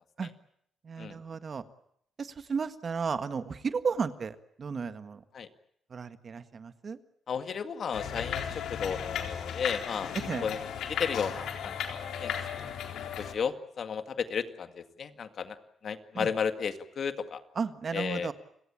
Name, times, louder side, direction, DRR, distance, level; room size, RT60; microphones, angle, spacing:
voice 1, 0.8-1.6 2.2-5.2 5.9-7.0 10.3-10.4 16.1-16.3 17.5-18.3, right 5 dB, 40° right, 11 dB, 1.6 m, -34 dB
voice 2, 7.3-10.1 10.4-12.3 13.2-15.6 15.8-17.4 17.9-18.3, left 6 dB, 55° left, 9 dB, 2.0 m, -34 dB
sound 1, 7.9-13.3, left 8 dB, 75° left, 3.8 m, -35 dB
29.5 x 17.5 x 8.8 m, 0.71 s
cardioid pair, 90°, 0 cm